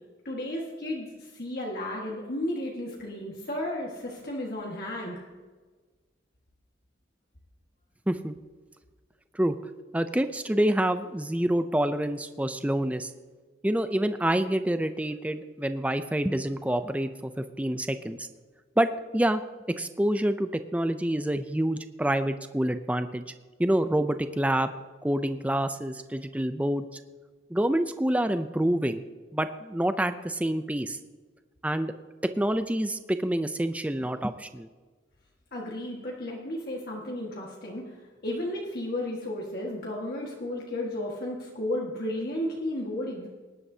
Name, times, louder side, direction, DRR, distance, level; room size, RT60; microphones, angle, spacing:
voice 1, 0.2-5.2 35.5-43.3, left 1 dB, 50° left, -2 dB, 1.6 m, -33 dB
voice 2, 9.9-13.1 13.6-18.3 18.8-19.4 19.8-23.2 23.6-24.7 25.0-27.0 27.5-29.0 29.3-31.0 31.6-31.9 32.4-34.7, right 1 dB, 5° right, 10 dB, 0.4 m, -27 dB
19.5 x 11.0 x 2.8 m, 1.4 s
head